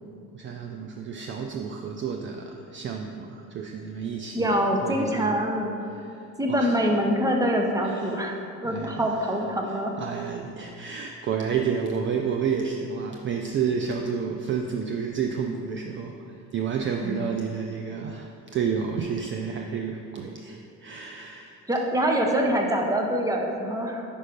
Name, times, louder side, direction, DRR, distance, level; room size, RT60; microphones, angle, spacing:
voice 1, 0.3-5.4 5.9-6.8 7.8-8.4 8.6-21.6, right 6 dB, 40° right, 3 dB, 0.4 m, -31 dB
voice 2, 4.3-5.8 6.4-9.9 17.0-17.3 21.7-24.1, equal, 10° right, 1 dB, 0.8 m, -25 dB
5.4 x 5.1 x 5.3 m, 2.7 s
cardioid pair, 105°, 32 cm